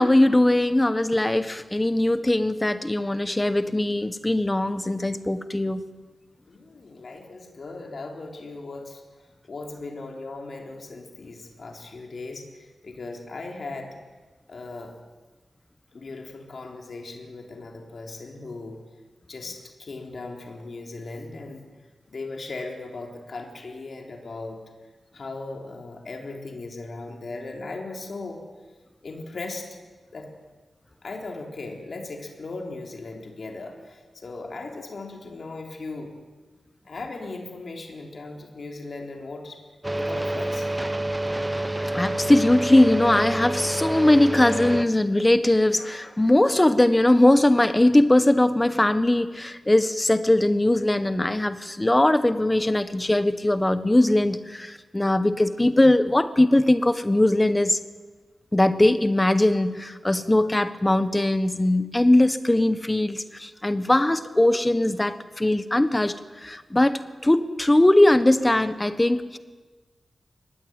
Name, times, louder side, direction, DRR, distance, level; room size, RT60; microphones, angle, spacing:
voice 1, 0.0-5.8 41.9-57.8 58.5-66.2 66.4-69.4, left 1 dB, 15° left, 12 dB, 1.3 m, -20 dB
voice 2, 6.5-13.9 14.5-14.9 15.9-18.8 19.3-21.6 22.1-24.6 25.1-28.4 29.0-29.7 30.1-30.3 31.0-36.1 36.9-39.6 39.9-40.7, left 3 dB, 55° left, 2 dB, 3.7 m, -38 dB
sound 1, 39.8-44.8, right 1 dB, 15° right, 1.0 m, -28 dB
24.0 x 19.5 x 9.1 m, 1.3 s
wide cardioid pair, 125°, 0 cm